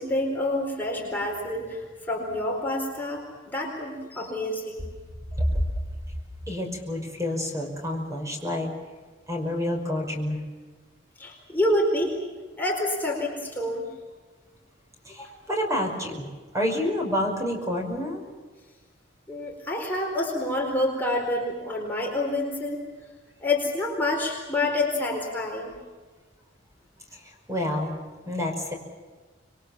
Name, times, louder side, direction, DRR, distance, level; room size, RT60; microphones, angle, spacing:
voice 1, 0.0-4.9 11.2-12.2 12.6-13.9 15.2-15.3 19.3-22.9 23.4-25.8, left 1 dB, 10° left, -1 dB, 4.3 m, -28 dB
voice 2, 6.5-8.7 9.3-10.4 15.1-16.3 16.5-18.2 27.1-27.2 27.5-28.0 28.2-28.7, left 1 dB, 15° right, 2 dB, 5.4 m, -28 dB
27.0 x 22.5 x 7.3 m, 1.4 s
head